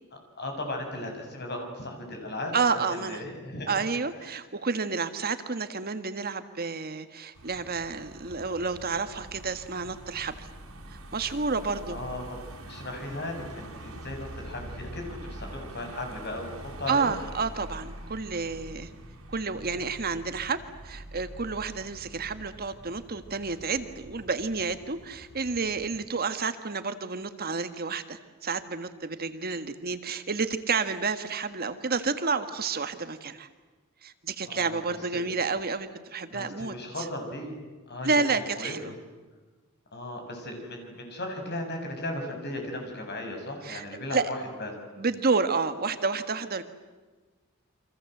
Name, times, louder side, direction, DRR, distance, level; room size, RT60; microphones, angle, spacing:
voice 1, 0.4-3.8 11.9-12.4 12.7-17.1 34.5-34.8 35.1-35.2 36.3-37.6 37.9-38.9 39.9-44.7, left 1 dB, 50° left, 3 dB, 7.2 m, -36 dB
voice 2, 2.5-3.2 3.7-10.5 10.9-12.0 16.9-18.9 19.3-33.5 34.0-37.1 38.0-38.8 43.6-43.8 44.1-44.2 45.0-46.6, right 4 dB, 45° right, 10 dB, 1.5 m, -30 dB
Car passing by / Engine, 7.3-26.0, right 1 dB, 75° right, 6.1 m, -45 dB
29.5 x 25.0 x 7.9 m, 1.3 s
head